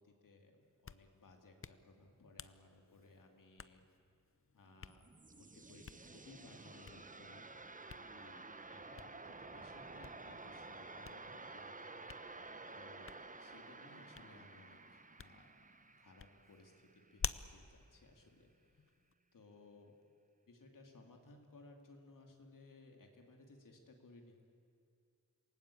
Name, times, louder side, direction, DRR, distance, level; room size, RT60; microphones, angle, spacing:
voice 1, 0.0-3.8 4.5-7.5 7.9-12.2 12.7-15.5 16.0-18.8 19.3-19.9 20.5-24.5, left 2 dB, 85° left, 2 dB, 3.0 m, -61 dB
Hands, 0.6-19.1, left 6 dB, 45° left, 0.7 m, -53 dB
sound 1, 4.7-17.5, right 3 dB, 25° right, 0.9 m, -52 dB
27.5 x 18.0 x 8.6 m, 2.4 s
wide cardioid pair, 95°, 31 cm